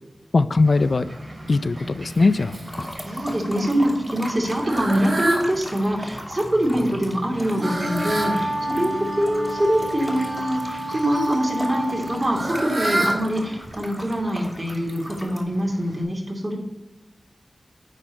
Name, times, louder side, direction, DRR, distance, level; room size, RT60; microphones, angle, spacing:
voice 1, 0.3-1.1 1.5-2.9, left 3 dB, 65° left, 14 dB, 0.4 m, -20 dB
Fowl, 0.6-16.0, right 1 dB, 55° right, 3.2 m, -32 dB
sound 1, 2.7-15.4, equal, 5° left, 2.1 m, -38 dB
voice 2, 3.0-16.6, equal, 35° right, -1 dB, 2.7 m, -24 dB
Wind instrument woodwind instrument, 7.4-12.8, right 1 dB, 15° right, 2.2 m, -30 dB
9.8 x 4.4 x 5.3 m, 1.0 s
cardioid pair, 50°, 0 cm